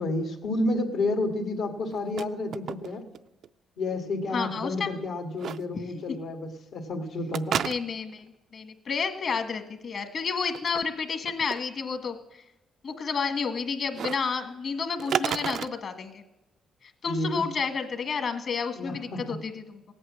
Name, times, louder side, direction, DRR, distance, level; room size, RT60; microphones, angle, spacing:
voice 1, 0.0-3.0 3.8-7.6 17.0-17.4 18.8-19.4, left 2 dB, 80° left, 2 dB, 1.9 m, -30 dB
sound 1, 1.9-2.3 2.5-3.2 3.4-3.5 5.4-5.6 7.3-8.1 10.4-10.8 11.3-11.6 13.9-14.2 15.0-15.7, right 8 dB, 65° right, 0.4 m, -30 dB
voice 2, 4.3-4.9 7.6-12.1 12.8-16.2 17.0-19.8, left 5 dB, 55° left, 7 dB, 1.6 m, -30 dB
17.5 x 8.6 x 7.6 m, 0.99 s
cardioid pair, 90°, 0 cm